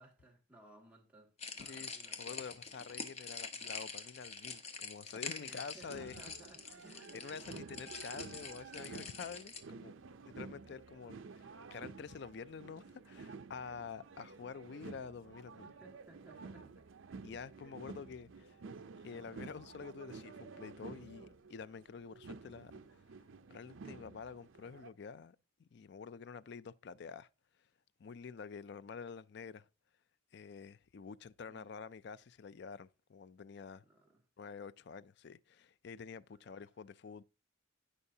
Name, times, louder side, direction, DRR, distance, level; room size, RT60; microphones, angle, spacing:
voice 1, 0.0-2.4 5.4-7.8 15.6-16.9 17.5-17.8 18.1-18.9 31.5-31.7 33.8-34.2 36.3-36.6, right 2 dB, 5° right, 2.1 m, -61 dB
sound 1, 1.4-9.6, left 5 dB, 30° left, 1.1 m, -46 dB
voice 2, 1.6-6.2 7.1-9.9 10.3-15.7 17.2-18.6 19.0-23.0 23.5-27.3 28.0-29.7 30.3-33.8 34.4-37.2, left 5 dB, 55° left, 0.4 m, -48 dB
sound 2, 5.9-24.9, right 4 dB, 75° right, 0.6 m, -52 dB
16.5 x 5.6 x 2.8 m
head